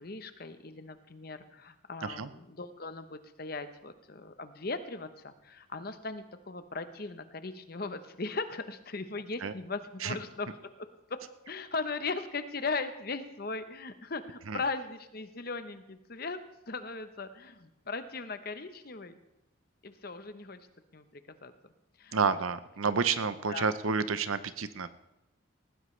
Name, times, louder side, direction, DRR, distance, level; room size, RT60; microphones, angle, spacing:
voice 1, 0.0-10.5 10.8-11.2 11.5-16.4 16.7-19.2 19.8-20.6 20.9-21.0 21.4-21.5 22.0-22.2 23.5-23.7, left 3 dB, 45° left, 10 dB, 0.9 m, -38 dB
voice 2, 22.1-24.9, right 5 dB, 90° right, 13 dB, 0.8 m, -30 dB
19.0 x 15.0 x 3.3 m, 0.91 s
head